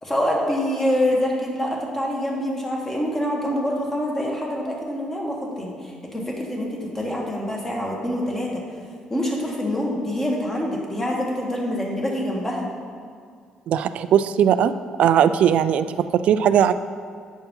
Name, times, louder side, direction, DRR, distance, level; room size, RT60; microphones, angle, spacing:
voice 1, 0.0-5.7 6.1-8.6 9.1-12.7, left 1 dB, 15° left, -2 dB, 1.5 m, -25 dB
voice 2, 13.7-14.7 15.0-16.7, right 9 dB, 70° right, 12 dB, 0.3 m, -18 dB
9.0 x 4.6 x 5.3 m, 2.1 s
cardioid pair, 115°, 2 cm